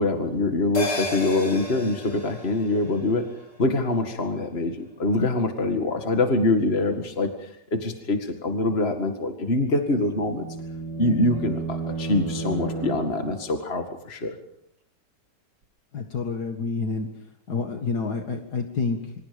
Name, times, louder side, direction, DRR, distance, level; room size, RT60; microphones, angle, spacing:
voice 1, 0.0-3.2 3.6-10.5 11.0-14.4, left 2 dB, 35° left, 5 dB, 2.3 m, -24 dB
sound 1, 0.7-5.5 5.8-5.9, left 2 dB, 85° left, 6.7 m, -35 dB
sound 2, 9.8-13.6, right 4 dB, 85° right, 3.1 m, -33 dB
voice 2, 15.9-17.1 17.5-19.1, left 4 dB, 65° left, 4 dB, 2.5 m, -28 dB
28.0 x 26.0 x 5.3 m, 0.73 s
omnidirectional pair, 1.8 m